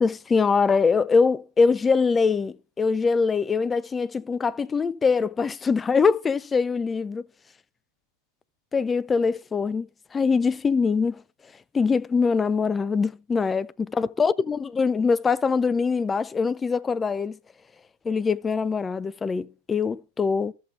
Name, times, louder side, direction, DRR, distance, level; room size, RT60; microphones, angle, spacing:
voice 1, 0.0-7.2 8.7-11.2 11.7-17.4 18.0-20.5, left 5 dB, 15° left, 0.4 m, -23 dB
13.5 x 7.3 x 2.4 m
figure-of-eight pair, 90°, 0 cm